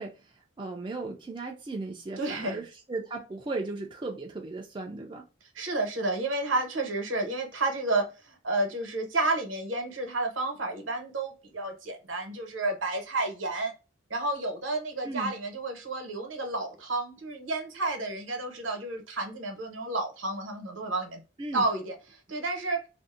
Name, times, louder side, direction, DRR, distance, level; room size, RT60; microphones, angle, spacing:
voice 1, 0.0-5.3 15.0-15.3 21.4-21.7, right 3 dB, 25° right, 0.3 m, -36 dB
voice 2, 2.2-2.6 5.5-13.7 14.1-21.2 21.5-21.9 22.3-22.8, right 2 dB, 80° right, 0.8 m, -31 dB
2.6 x 2.0 x 2.4 m
head